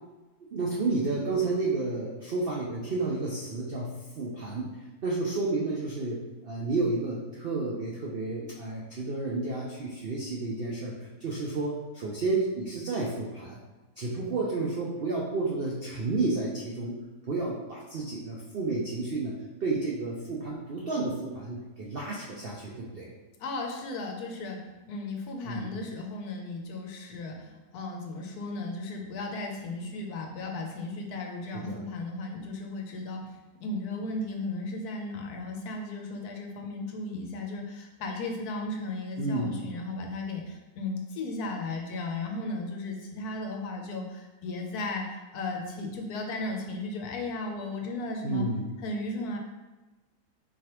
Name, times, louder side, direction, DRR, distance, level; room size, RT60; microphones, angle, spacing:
voice 1, 0.5-4.8 5.0-13.6 14.0-16.9 17.3-23.1 25.4-25.7 31.5-31.8 39.2-39.6 48.2-48.7, right 3 dB, 75° right, -4 dB, 0.5 m, -31 dB
voice 2, 23.4-48.5 48.8-49.4, left 2 dB, 70° left, 2 dB, 1.1 m, -35 dB
4.4 x 3.2 x 2.9 m, 1.2 s
omnidirectional pair, 1.8 m